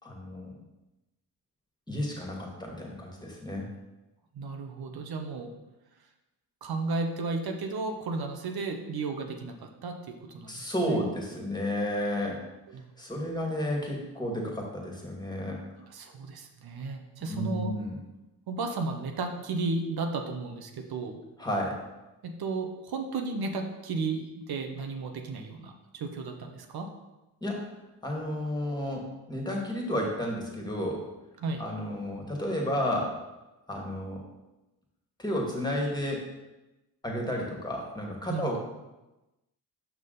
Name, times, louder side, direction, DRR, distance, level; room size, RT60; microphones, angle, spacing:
voice 1, 0.0-0.5 1.9-3.7 10.5-12.4 13.0-15.6 17.3-17.9 21.4-21.8 27.4-27.6 28.0-31.0 31.6-33.2 33.7-34.2 35.2-36.2 37.0-38.6, equal, 10° left, -1 dB, 2.0 m, -32 dB
voice 2, 4.3-5.5 6.6-11.0 12.7-12.8 15.9-17.7 18.5-21.2 22.2-26.9 31.4-31.6 38.3-38.6, right 3 dB, 60° right, 4 dB, 1.0 m, -34 dB
6.0 x 5.6 x 4.0 m, 1.0 s
cardioid pair, 70°, 43 cm